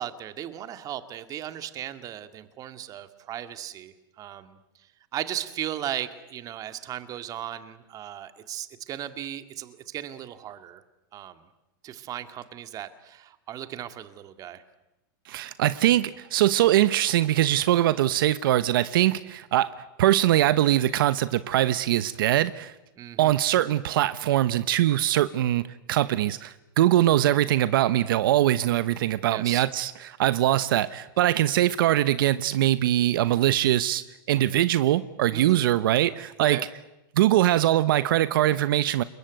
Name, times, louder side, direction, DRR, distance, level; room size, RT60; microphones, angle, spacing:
voice 1, 0.0-4.6 5.1-10.8 11.1-11.4 11.8-14.6 23.0-23.4 29.3-29.6 35.3-35.6 36.5-36.6, right 11 dB, 30° right, 10 dB, 2.0 m, -36 dB
voice 2, 15.3-22.7 23.2-34.0 34.3-36.6 37.2-39.0, right 13 dB, 70° right, 14 dB, 1.0 m, -22 dB
28.0 x 22.0 x 9.3 m, 0.94 s
supercardioid pair, 140°, 12 cm